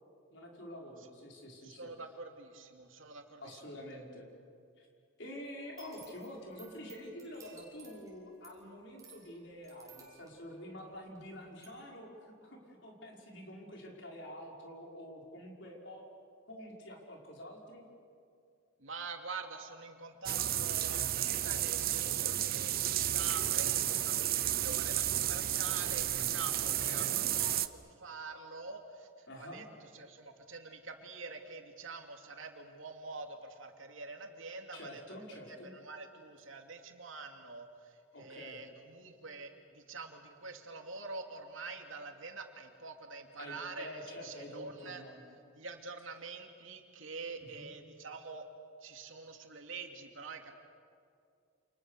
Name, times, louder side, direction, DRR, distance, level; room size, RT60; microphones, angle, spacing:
voice 1, 0.3-1.9 3.4-4.3 4.8-4.9 5.2-16.0 16.5-17.8 26.6-27.2 29.3-29.6 34.7-35.7 38.1-38.6 43.4-45.2 47.4-47.7, left 1 dB, 60° left, -1 dB, 5.6 m, -47 dB
voice 2, 1.6-3.6 18.8-35.2 35.5-45.0 45.5-48.4 48.8-50.5, right 4 dB, 80° right, 4 dB, 2.7 m, -46 dB
sound 1, 5.6-11.3 11.6-11.7, right 5 dB, 15° right, 5.9 m, -58 dB
sound 2, 20.3-27.7, right 12 dB, 50° right, 0.8 m, -32 dB
29.5 x 28.0 x 6.7 m, 2.4 s
head